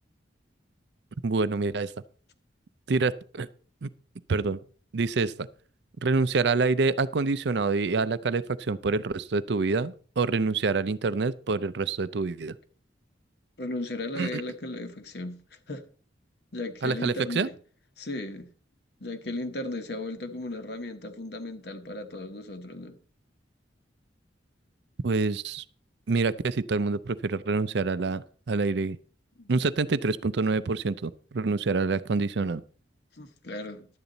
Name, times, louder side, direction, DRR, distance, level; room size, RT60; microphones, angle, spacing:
voice 1, 1.2-1.9 2.9-3.5 3.8-3.9 4.3-4.6 4.9-5.5 6.0-12.6 14.2-14.4 16.8-17.5 25.0-25.6 26.1-29.0 29.5-32.6, right 4 dB, 65° right, 0.5 m, -26 dB
voice 2, 13.6-15.4 15.7-15.8 16.5-17.5 18.0-18.5 19.0-23.0 29.4-29.5 33.1-33.9, left 2 dB, 55° left, 1.2 m, -36 dB
11.5 x 8.7 x 4.0 m
head